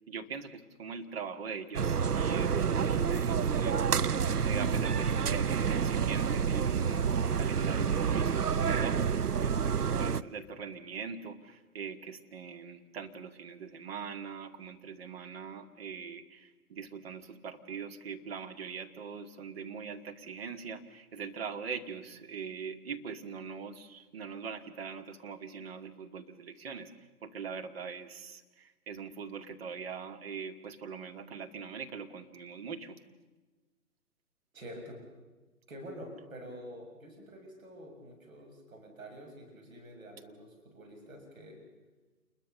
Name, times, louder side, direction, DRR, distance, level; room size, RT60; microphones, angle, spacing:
voice 1, 0.1-33.0, right 6 dB, 40° right, 5 dB, 2.1 m, -42 dB
sound 1, 1.7-10.2, right 6 dB, 75° right, 0.9 m, -28 dB
voice 2, 34.5-35.0 35.7-41.6, equal, 60° right, 1 dB, 7.0 m, -47 dB
28.5 x 22.0 x 6.9 m, 1.2 s
figure-of-eight pair, 135°, 46 cm